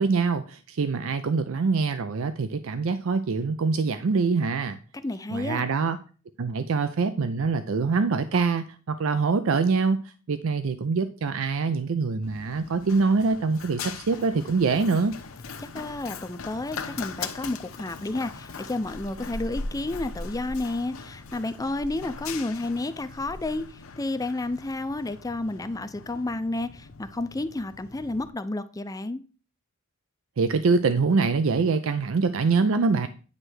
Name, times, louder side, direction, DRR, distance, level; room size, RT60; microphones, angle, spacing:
voice 1, 0.0-4.8 5.3-6.0 6.4-10.0 10.3-15.1 30.4-33.1, right 4 dB, 70° right, 0.5 m, -24 dB
voice 2, 5.0-5.7 15.6-29.2, left 2 dB, 15° left, 0.5 m, -31 dB
Run, 12.2-28.3, left 4 dB, 75° left, 0.9 m, -40 dB
9.7 x 3.3 x 6.2 m
head